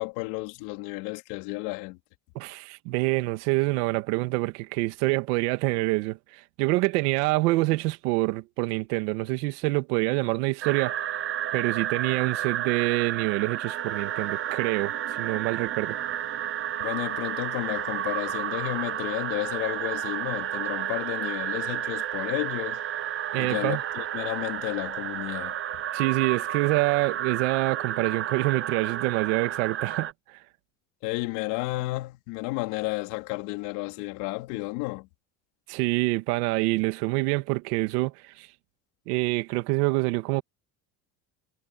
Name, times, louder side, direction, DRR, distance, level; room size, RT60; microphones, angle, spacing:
voice 1, 0.0-2.0 16.8-22.8 23.4-25.6 31.0-35.1, left 23 dB, 85° left, 2.6 m, -32 dB
voice 2, 2.4-6.2 6.6-11.0 11.5-16.0 23.3-23.8 25.9-30.1 35.7-38.5 39.1-40.4, right 22 dB, 90° right, 2.1 m, -26 dB
sound 1, 10.6-30.1, right 10 dB, 30° right, 0.5 m, -31 dB
Wind instrument woodwind instrument, 13.6-24.3, right 13 dB, 70° right, 4.9 m, -43 dB
supercardioid pair, 100°, 45 cm